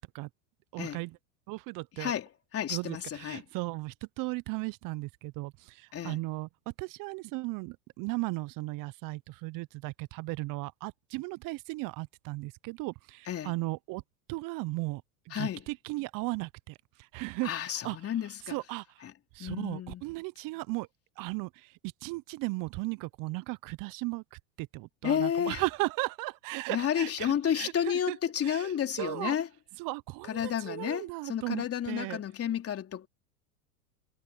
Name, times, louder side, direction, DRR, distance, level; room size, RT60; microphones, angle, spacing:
voice 1, 0.7-1.1 1.5-2.1 2.7-6.5 6.8-14.0 14.3-15.0 15.3-16.8 17.1-17.5 17.8-18.0 18.5-18.8 19.3-20.9 21.2-21.7 22.0-28.2 28.4-28.7 29.0-29.4 29.8-32.2, right 23 dB, 45° right, 1.0 m, -36 dB
voice 2, 1.9-3.4 5.9-6.2 13.3-13.5 15.3-15.6 17.4-18.6 19.0-19.1 19.4-20.0 25.0-25.6 26.7-29.5 30.3-33.1, left 9 dB, 30° left, 3.4 m, -31 dB
hypercardioid pair, 95°, 44 cm